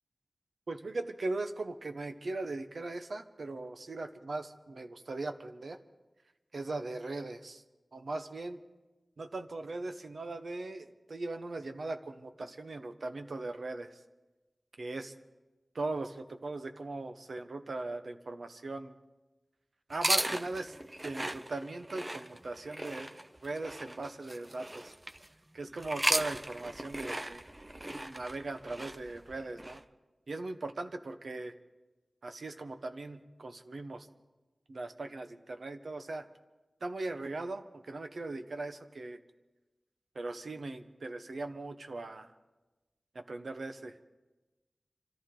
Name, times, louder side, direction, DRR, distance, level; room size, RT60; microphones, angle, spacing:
voice 1, 0.7-5.8 6.5-7.6 7.9-8.6 9.2-13.9 14.8-15.1 15.7-18.9 19.9-20.7 21.0-23.1 23.4-24.9 25.5-27.4 27.9-29.8 30.3-31.5 32.2-34.1 34.7-36.3 36.8-39.2 40.1-42.3 43.1-44.0, right 2 dB, 75° right, 7 dB, 1.0 m, -39 dB
sound 1, 19.9-25.3 25.8-29.8, right 1 dB, 25° right, 0.7 m, -36 dB
26.0 x 14.0 x 3.9 m, 1.1 s
wide cardioid pair, 85°, 0 cm